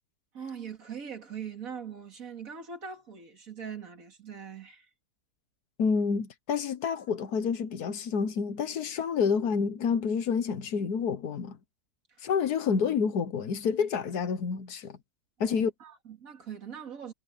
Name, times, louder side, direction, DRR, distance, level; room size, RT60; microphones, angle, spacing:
voice 1, 0.3-4.9 12.1-12.2 15.4-17.1, right 7 dB, 65° right, 2.7 m, -41 dB
voice 2, 5.8-11.6 12.2-15.0 15.4-15.7, left 6 dB, 85° left, 1.7 m, -28 dB
omnidirectional pair, 1.6 m